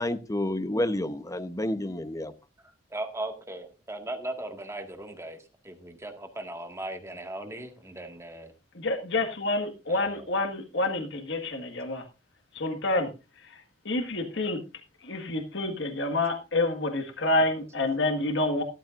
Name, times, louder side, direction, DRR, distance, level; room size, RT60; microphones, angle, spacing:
voice 1, 0.0-2.3, left 1 dB, 15° left, 11 dB, 0.8 m, -29 dB
voice 2, 2.9-8.5 9.9-10.3, right 1 dB, 15° right, 4 dB, 1.8 m, -38 dB
voice 3, 8.8-12.0 12.5-13.1 13.4-14.6 15.0-18.6, left 2 dB, 60° left, 5 dB, 1.7 m, -28 dB
14.5 x 13.5 x 2.5 m, 0.28 s
head